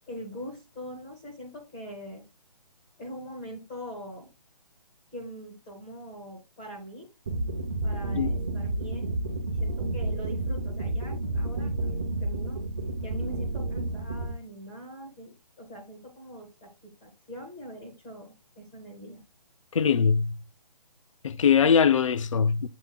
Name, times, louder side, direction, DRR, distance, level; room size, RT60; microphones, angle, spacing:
voice 1, 0.1-2.2 3.0-4.3 5.1-7.1 7.8-9.1 9.5-12.6 13.0-19.2, equal, 5° left, 0.6 m, -42 dB
sound 1, 7.3-14.3, right 2 dB, 30° right, 0.8 m, -30 dB
voice 2, 19.7-20.4 21.2-22.7, left 6 dB, 50° left, 0.4 m, -22 dB
7.5 x 3.8 x 3.9 m
hypercardioid pair, 175°, 21 cm